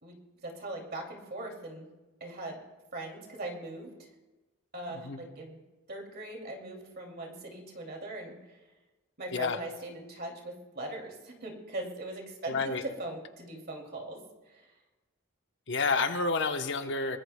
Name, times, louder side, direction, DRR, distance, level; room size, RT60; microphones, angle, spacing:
voice 1, 0.0-1.9 2.2-2.6 2.9-4.1 4.7-5.6 5.9-8.4 9.2-14.2 14.5-14.6, right 1 dB, 45° right, 1 dB, 2.5 m, -40 dB
voice 2, 4.9-5.2 9.3-9.6 12.5-12.8 15.7-17.2, left 4 dB, 55° left, 7 dB, 0.9 m, -29 dB
22.5 x 20.0 x 2.2 m, 1.2 s
head